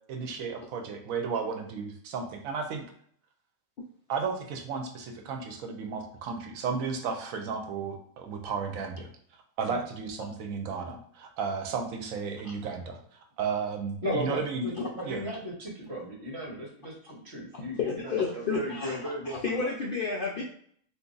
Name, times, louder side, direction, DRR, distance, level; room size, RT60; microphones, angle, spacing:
voice 1, 0.1-2.8 4.1-9.1 9.6-13.0 13.4-14.7 15.0-15.3, right 5 dB, 85° right, 5 dB, 1.0 m, -33 dB
voice 2, 14.0-19.7, equal, 55° right, -2 dB, 1.3 m, -36 dB
voice 3, 17.8-19.0 19.3-20.4, left 5 dB, 65° left, -2 dB, 0.5 m, -31 dB
2.6 x 2.4 x 3.8 m, 0.62 s
omnidirectional pair, 1.4 m